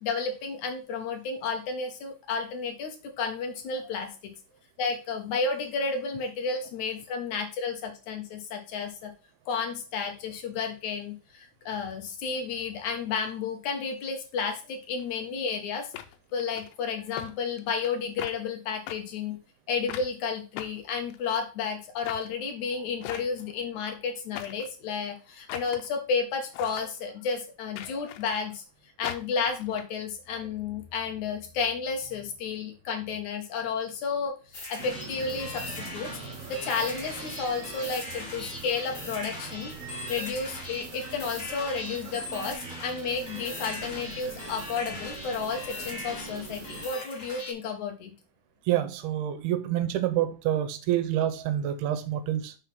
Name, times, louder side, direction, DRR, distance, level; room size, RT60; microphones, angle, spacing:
voice 1, 0.0-4.3 4.8-9.1 9.5-15.9 16.3-19.4 19.7-28.6 29.0-36.1 36.5-39.7 40.1-48.1, left 5 dB, 70° left, 1.9 m, -32 dB
sound 1, 15.0-15.1 15.9-16.7 17.2-17.3 17.6-17.9 18.2-18.4 18.9-19.0 19.9-20.1 20.6-21.4 22.0-22.3 23.0-23.5 24.3-24.7 25.5-25.9 26.5-26.9 27.8-28.4 29.0-29.8, left 11 dB, 85° left, 2.7 m, -40 dB
sound 2, 34.5-47.5, left 2 dB, 25° left, 2.0 m, -40 dB
sound 3, 34.8-46.9, right 4 dB, 60° right, 1.7 m, -43 dB
voice 2, 48.7-52.6, right 12 dB, 80° right, 2.6 m, -27 dB
6.1 x 3.6 x 5.8 m
omnidirectional pair, 4.5 m